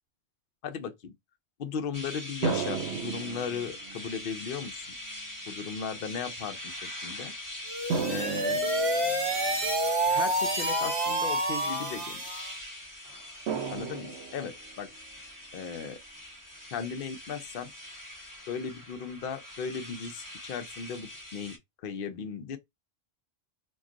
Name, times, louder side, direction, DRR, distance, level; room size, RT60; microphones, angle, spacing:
voice 1, 0.6-1.1 1.6-4.8 5.5-7.3 8.1-8.6 10.1-12.2 13.7-14.9 15.5-16.0 16.7-17.7 18.5-22.6, left 6 dB, 60° left, 0.7 m, -36 dB
sound 1, 1.9-21.6, left 1 dB, 15° left, 1.0 m, -43 dB
sound 2, 2.4-4.2 5.1-5.2 7.9-9.6 13.5-14.8, right 6 dB, 75° right, 0.9 m, -34 dB
sound 3, 7.7-12.5, right 1 dB, 35° right, 0.7 m, -28 dB
2.3 x 2.2 x 3.7 m
omnidirectional pair, 1.2 m